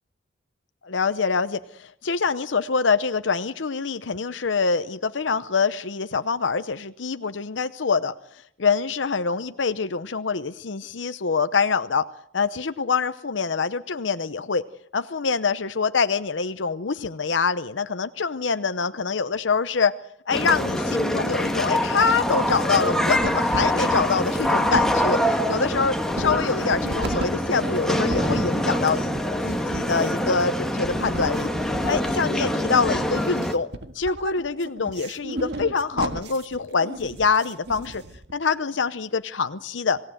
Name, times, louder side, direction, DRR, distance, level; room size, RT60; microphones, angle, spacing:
voice 1, 0.8-8.1 8.6-12.1 12.3-14.6 14.9-20.0 20.3-29.1 29.4-31.5 31.9-33.7 33.9-38.0 38.3-40.0, left 5 dB, 85° left, 11 dB, 0.8 m, -25 dB
sound 1, 20.3-33.5, equal, 5° left, 1.7 m, -25 dB
sound 2, 21.1-21.7 22.0-22.8 23.2-38.3, right 1 dB, 65° right, 1.7 m, -35 dB
27.0 x 17.5 x 7.9 m, 0.74 s
head